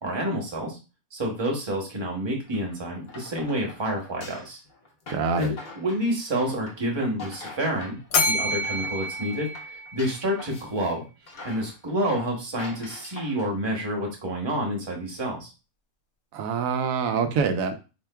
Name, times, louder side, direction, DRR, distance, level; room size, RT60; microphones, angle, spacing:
voice 1, 0.0-0.8 1.1-4.6 5.3-8.0 8.2-11.0 11.4-15.5, equal, 20° right, 0 dB, 0.9 m, -29 dB
sound 1, 2.4-8.1 8.4-10.9 11.3-13.6, left 3 dB, 45° left, 0.7 m, -44 dB
voice 2, 5.1-5.5 16.3-17.7, right 5 dB, 90° right, 6 dB, 1.0 m, -25 dB
Bell, 8.1-10.4, left 2 dB, 70° left, 1.0 m, -27 dB
4.5 x 2.8 x 2.2 m, 0.31 s
omnidirectional pair, 1.4 m